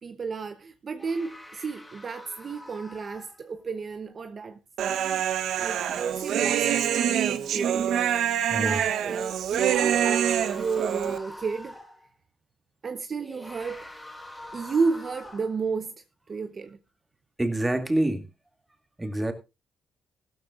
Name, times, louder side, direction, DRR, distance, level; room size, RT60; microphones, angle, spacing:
voice 1, 0.0-4.6 4.9-5.2 5.6-8.0 8.5-11.8 12.8-13.9 14.5-16.8, right 4 dB, 40° right, 0.9 m, -32 dB
sound 1, 1.0-3.8 8.0-8.1 9.4-12.1 13.2-15.7, left 1 dB, 5° left, 3.8 m, -45 dB
Human voice, 4.8-11.2, right 9 dB, 75° right, 1.0 m, -25 dB
voice 2, 17.4-18.2 19.0-19.3, right 1 dB, 15° right, 2.4 m, -26 dB
16.0 x 13.0 x 2.5 m
cardioid pair, 90°, 0 cm